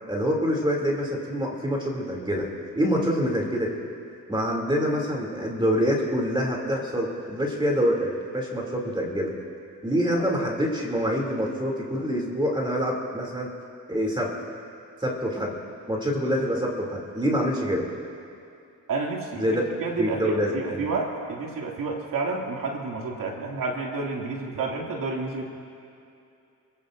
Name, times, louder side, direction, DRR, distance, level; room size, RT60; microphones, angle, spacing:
voice 1, 0.1-2.5 2.7-3.7 4.3-9.3 9.8-13.5 13.9-14.3 15.0-15.5 15.9-17.9 19.3-19.6 20.0-20.9, equal, 15° right, -1 dB, 2.7 m, -26 dB
voice 2, 18.9-25.4, right 3 dB, 70° right, -2 dB, 2.5 m, -30 dB
29.0 x 16.0 x 2.6 m, 2.6 s
cardioid pair, 95°, 34 cm